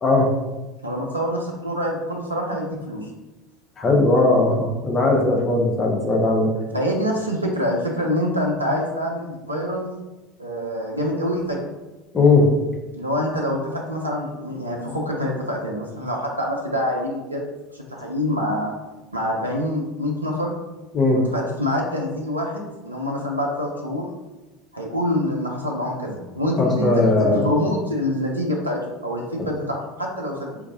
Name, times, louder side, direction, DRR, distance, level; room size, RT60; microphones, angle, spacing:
voice 1, 0.8-3.1 6.7-9.9 10.4-11.6 12.9-17.5 17.7-18.7 19.1-20.5 21.3-24.1 24.7-30.6, equal, 90° right, -1 dB, 0.4 m, -26 dB
voice 2, 3.8-6.5 12.1-12.5 20.9-21.2 26.6-27.5, left 2 dB, 30° left, 0 dB, 0.8 m, -18 dB
3.9 x 2.5 x 2.6 m, 1.1 s
figure-of-eight pair, 70°, 0 cm